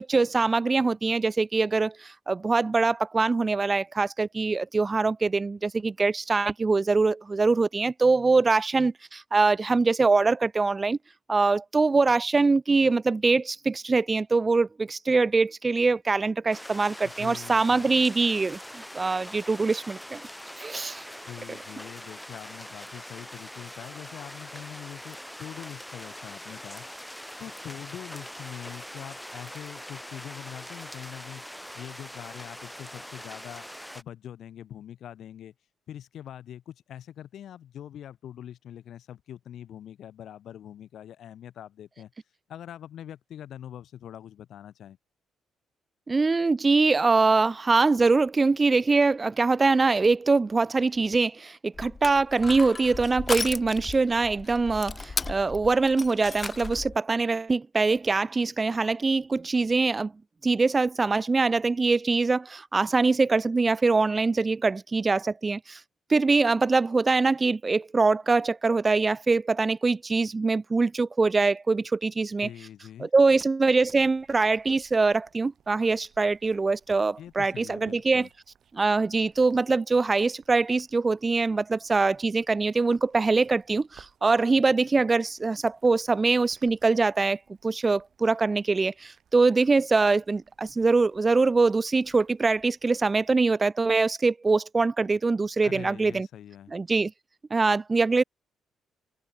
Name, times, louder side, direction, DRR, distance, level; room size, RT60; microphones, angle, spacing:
voice 1, 0.0-11.0 11.3-20.2 20.6-21.1 46.1-60.1 60.4-65.8 66.1-72.5 73.0-78.3 78.7-96.3 96.7-97.1 97.5-98.2, right 3 dB, 25° right, 0.5 m, -23 dB
sound 1, 16.5-34.0, equal, 5° left, 5.8 m, -43 dB
voice 2, 17.0-17.9 21.3-26.9 27.4-31.4 31.7-33.7 33.9-35.5 35.9-42.1 42.5-45.0 72.4-73.1 77.2-78.3 95.6-96.7, left 10 dB, 70° left, 4.0 m, -43 dB
Crushing, 51.7-57.0, left 4 dB, 30° left, 0.9 m, -35 dB
sound 2, 73.8-93.3, right 8 dB, 60° right, 7.8 m, -62 dB
cardioid pair, 90°, 0 cm